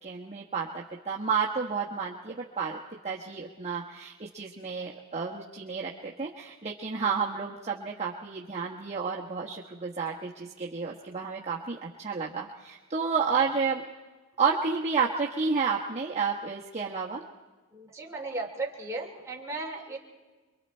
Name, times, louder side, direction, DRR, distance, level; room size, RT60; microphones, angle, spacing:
voice 1, 0.0-2.8 3.0-13.8 14.4-17.2, right 5 dB, 30° right, -3 dB, 1.2 m, -31 dB
voice 2, 6.9-7.3 17.7-20.0, right 2 dB, 15° right, -2 dB, 2.9 m, -36 dB
26.5 x 23.5 x 4.4 m, 1.3 s
head